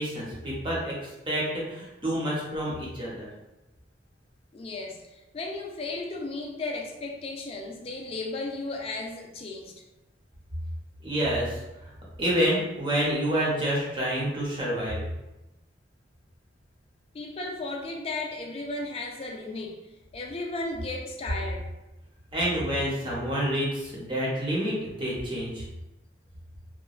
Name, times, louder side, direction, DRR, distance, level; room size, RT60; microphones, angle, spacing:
voice 1, 0.0-3.3 11.0-11.6 12.2-15.1 22.3-25.7, equal, 25° right, -5 dB, 0.7 m, -28 dB
voice 2, 4.5-9.7 17.1-19.8 20.1-21.6, left 2 dB, 30° left, 1 dB, 0.3 m, -35 dB
2.9 x 2.2 x 2.3 m, 0.98 s
head